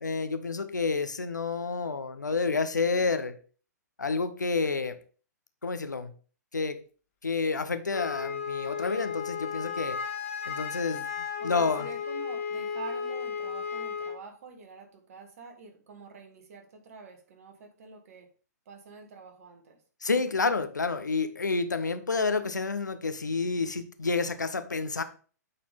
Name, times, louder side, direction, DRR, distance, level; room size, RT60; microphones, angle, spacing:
voice 1, 0.0-3.3 4.0-4.9 5.6-6.1 6.5-6.8 7.2-10.0 10.5-11.1 11.4-11.9 20.0-25.0, left 4 dB, 80° left, 10 dB, 0.8 m, -29 dB
Wind instrument woodwind instrument, 7.9-14.2, left 6 dB, 50° left, 1.5 m, -34 dB
voice 2, 11.4-18.3 18.7-19.8, right 5 dB, 55° right, 5 dB, 1.7 m, -46 dB
8.8 x 4.2 x 3.5 m, 0.39 s
figure-of-eight pair, 115°, 10 cm